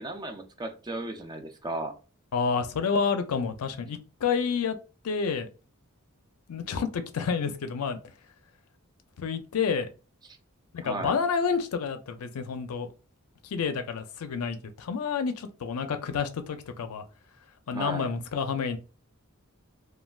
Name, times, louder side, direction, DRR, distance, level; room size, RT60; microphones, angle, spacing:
voice 1, 0.0-2.0 10.8-11.1 17.7-18.1, right 2 dB, 20° right, 0.3 m, -35 dB
voice 2, 2.3-4.8 5.0-5.5 6.5-8.0 9.2-9.9 10.7-12.9 13.5-17.0 17.7-18.8, left 6 dB, 85° left, 0.4 m, -29 dB
3.2 x 2.2 x 2.3 m
head